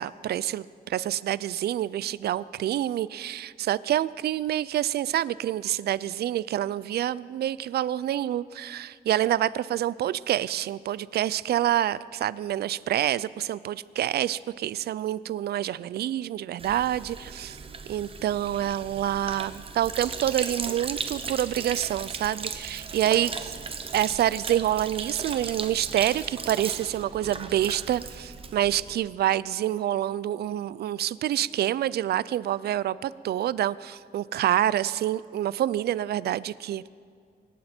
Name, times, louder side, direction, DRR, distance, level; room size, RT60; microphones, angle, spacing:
voice 1, 0.0-17.6 17.9-23.5 23.9-36.8, right 12 dB, 70° right, 19 dB, 0.4 m, -27 dB
Sink (filling or washing), 16.6-28.9, right 5 dB, 35° right, 0.9 m, -36 dB
25.0 x 12.0 x 4.4 m, 2.2 s
wide cardioid pair, 160°, 17 cm